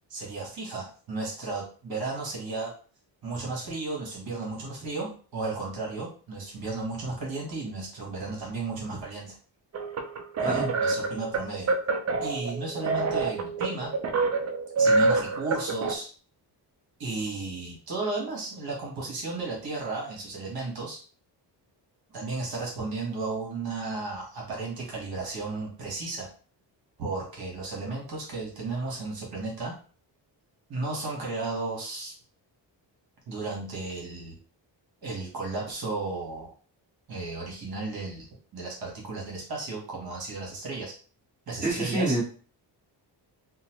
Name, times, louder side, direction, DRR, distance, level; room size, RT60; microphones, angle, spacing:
voice 1, 0.1-2.7 3.2-9.4 10.4-11.7 12.2-13.9 14.8-16.1 17.0-21.0 22.1-26.3 27.0-29.7 30.7-32.1 33.3-34.4 35.0-36.5 37.1-38.3 38.5-40.9 41.5-42.2, right 3 dB, 55° right, -2 dB, 1.2 m, -34 dB
sound 1, 9.7-15.9, right 3 dB, 40° right, 0.4 m, -27 dB
voice 2, 41.6-42.2, right 1 dB, 20° right, -6 dB, 1.1 m, -26 dB
3.8 x 2.0 x 2.9 m, 0.40 s
wide cardioid pair, 155°, 44 cm